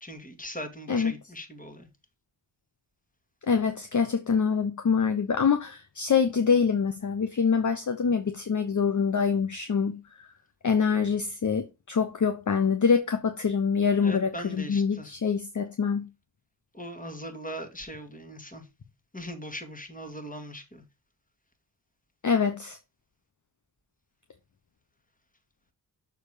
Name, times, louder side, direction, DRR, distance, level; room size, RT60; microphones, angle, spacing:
voice 1, 0.0-1.9 14.0-15.1 16.7-18.7 19.1-20.8, equal, 15° left, 2.2 m, -40 dB
voice 2, 3.5-10.0 10.6-16.1 22.2-22.8, left 6 dB, 40° left, 0.9 m, -25 dB
6.6 x 4.7 x 4.9 m
cardioid pair, 50°, 47 cm